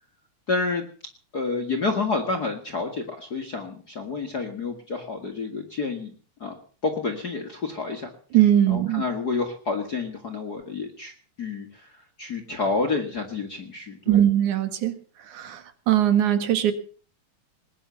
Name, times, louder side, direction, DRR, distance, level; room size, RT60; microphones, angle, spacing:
voice 1, 0.5-0.8 1.3-6.1 6.4-6.6 6.8-8.1 8.7-11.1 11.4-11.9 12.2-14.2, left 4 dB, 35° left, 5 dB, 2.0 m, -29 dB
voice 2, 8.3-9.0 14.1-15.0 15.3-15.6 15.9-16.7, right 11 dB, 85° right, 10 dB, 3.2 m, -20 dB
20.0 x 10.0 x 6.9 m, 0.43 s
omnidirectional pair, 3.4 m